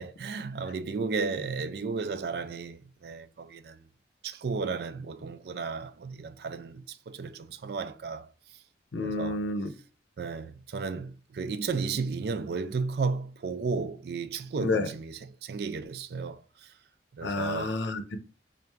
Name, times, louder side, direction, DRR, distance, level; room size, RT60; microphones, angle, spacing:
voice 1, 0.0-3.9 4.2-8.6 9.0-9.4 10.2-16.7 17.1-17.7, right 4 dB, 55° right, 0.3 m, -34 dB
voice 2, 8.9-9.7 14.6-14.9 17.2-18.2, left 2 dB, 75° left, 0.6 m, -30 dB
3.4 x 2.6 x 4.4 m
head